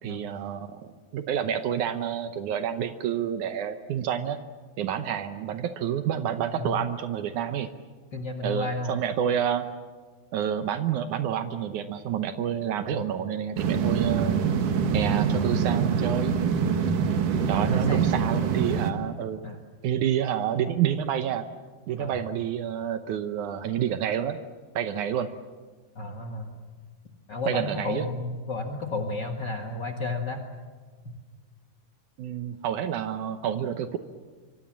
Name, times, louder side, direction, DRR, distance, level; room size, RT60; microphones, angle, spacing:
voice 1, 0.0-4.4 4.8-7.7 8.4-9.7 10.3-14.4 14.9-16.4 17.5-19.4 19.8-21.4 21.9-24.4 24.7-25.3 27.5-28.1 32.2-34.0, right 9 dB, 85° right, 9 dB, 1.7 m, -28 dB
voice 2, 8.1-8.9 12.9-13.0 17.7-18.2 19.4-19.6 22.0-22.2 25.9-26.5 27.3-30.4, left 2 dB, 75° left, 3 dB, 0.9 m, -32 dB
sound 1, 13.6-18.9, right 6 dB, 60° right, 2.8 m, -25 dB
25.5 x 25.0 x 7.5 m, 1.5 s
omnidirectional pair, 4.8 m